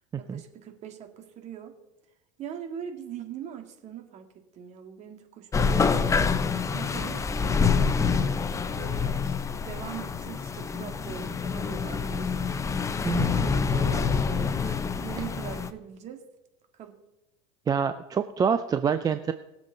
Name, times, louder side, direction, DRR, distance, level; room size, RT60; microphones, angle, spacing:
voice 1, 0.2-1.7 2.4-6.1 6.7-8.2 8.5-9.2 9.6-12.5 13.2-16.2 16.8-17.0, right 8 dB, 45° right, 5 dB, 2.1 m, -42 dB
sound 1, 5.5-15.7, left 5 dB, 20° left, 0.8 m, -26 dB
voice 2, 13.0-13.4 17.7-19.3, right 6 dB, 20° right, 10 dB, 0.5 m, -26 dB
21.0 x 7.3 x 4.0 m, 0.98 s
supercardioid pair, 115°, 17 cm